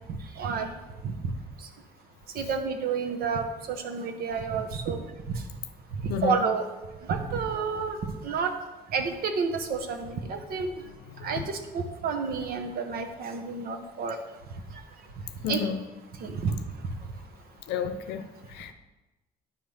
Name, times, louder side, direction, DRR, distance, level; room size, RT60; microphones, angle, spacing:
voice 1, 0.4-0.7 1.0-1.3 2.3-5.0 5.3-5.4 6.0-6.7 7.1-8.0 8.2-8.5 8.9-10.7 11.2-14.2 15.4-15.7 16.2-16.5, right 5 dB, 60° right, 6 dB, 1.0 m, -30 dB
voice 2, 6.1-6.5 10.9-11.4 15.4-15.8 17.7-18.7, left 7 dB, 90° left, 9 dB, 0.6 m, -32 dB
9.7 x 3.3 x 5.6 m, 1.1 s
cardioid pair, 110°, 17 cm